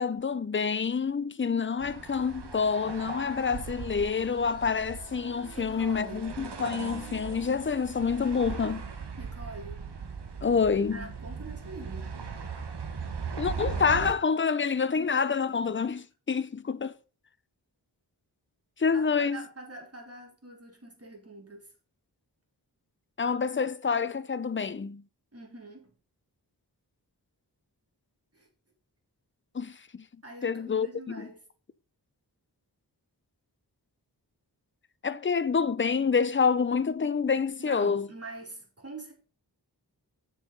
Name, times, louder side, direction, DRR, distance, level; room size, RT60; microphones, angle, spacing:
voice 1, 0.0-8.9 10.4-11.1 13.4-16.9 18.8-19.4 23.2-25.0 29.5-30.0 30.4-31.3 35.0-38.1, left 5 dB, 30° left, 0.5 m, -27 dB
sound 1, 1.8-14.1, right 5 dB, 85° right, 1.2 m, -39 dB
voice 2, 5.5-6.3 9.2-9.9 10.9-12.1 18.9-19.0 19.3-21.7 25.3-25.9 28.3-28.5 30.2-31.4 37.6-39.1, right 2 dB, 35° right, 2.9 m, -44 dB
7.0 x 5.7 x 5.4 m
wide cardioid pair, 65°, 40 cm